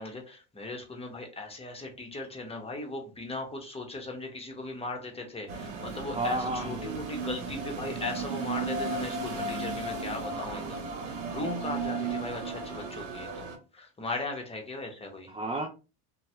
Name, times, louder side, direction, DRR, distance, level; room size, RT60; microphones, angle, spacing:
voice 1, 0.0-15.3, left 2 dB, 15° left, 2 dB, 1.0 m, -38 dB
sound 1, 5.5-13.6, right 4 dB, 90° right, 0.9 m, -35 dB
voice 2, 6.1-7.1 15.2-15.7, right 1 dB, 15° right, 2 dB, 0.4 m, -32 dB
3.0 x 2.3 x 2.7 m, 0.31 s
supercardioid pair, 95°, 34 cm